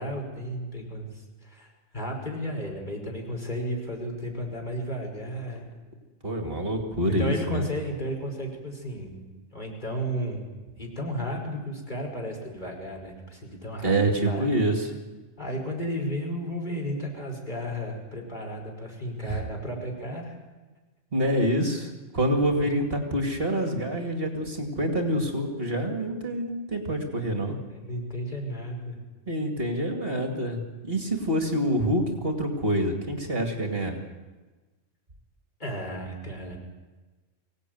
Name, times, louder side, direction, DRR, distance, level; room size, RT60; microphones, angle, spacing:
voice 1, 0.0-5.7 7.1-9.2 9.5-10.4 10.8-13.9 14.3-14.5 15.4-20.3 27.7-29.0 35.6-36.6, equal, 35° left, 0 dB, 5.3 m, -33 dB
voice 2, 6.2-7.6 13.8-14.9 19.2-19.4 21.1-27.5 29.3-34.0, right 1 dB, 50° right, 4 dB, 2.7 m, -26 dB
24.0 x 17.5 x 9.4 m, 1.2 s
omnidirectional pair, 1.3 m